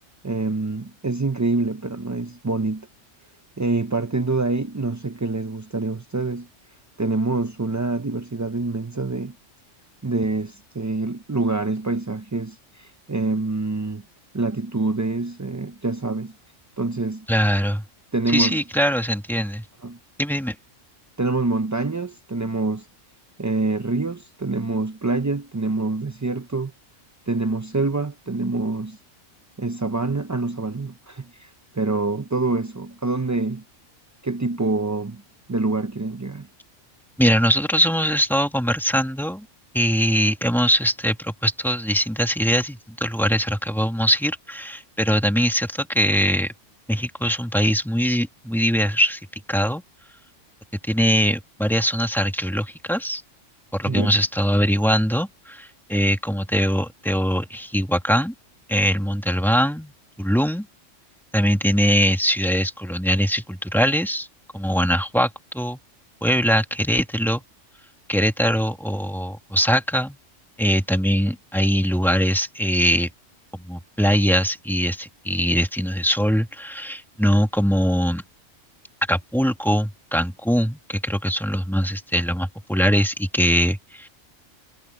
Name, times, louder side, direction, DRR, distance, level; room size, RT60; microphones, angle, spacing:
voice 1, 0.2-2.9 3.6-6.5 7.0-9.4 10.0-14.0 14.3-16.3 16.8-17.3 18.1-18.6 19.8-20.0 21.2-22.9 23.4-26.7 27.3-29.0 29.6-33.6 34.2-35.2 35.5-36.5 53.9-54.1, right 3 dB, 25° right, 0.4 m, -26 dB
voice 2, 17.3-17.9 18.3-19.7 20.2-20.5 37.2-39.5 39.7-46.5 46.9-49.2 49.5-49.8 50.9-53.2 53.7-58.3 58.7-59.9 60.2-60.7 61.3-64.3 64.5-65.8 66.2-67.4 68.1-70.2 70.6-73.1 73.5-78.2 79.1-84.1, equal, ahead, 2.0 m, -22 dB
omnidirectional pair, 1.3 m